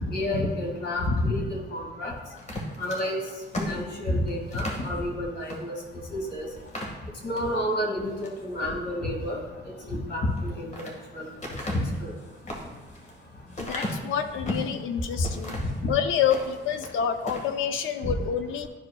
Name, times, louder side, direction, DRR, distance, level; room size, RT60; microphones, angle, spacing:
voice 1, 0.1-2.1 2.8-3.2 3.5-5.8 6.1-6.5 7.2-9.4 9.9-11.3 11.7-12.1 15.8-15.9 18.0-18.1, left 1 dB, 55° left, 0 dB, 2.1 m, -29 dB
sound 1, 2.4-4.9 5.4-5.6 6.0-6.1 6.6-7.5 8.0-8.4 10.2-11.0 11.4-14.8 15.2-15.8 16.2-16.9 17.2-17.5, left 1 dB, 35° left, 1.7 m, -35 dB
voice 2, 13.6-15.6 15.9-18.7, left 8 dB, 80° left, 9 dB, 0.6 m, -28 dB
12.0 x 4.9 x 2.3 m, 1.2 s
cardioid pair, 90°, 20 cm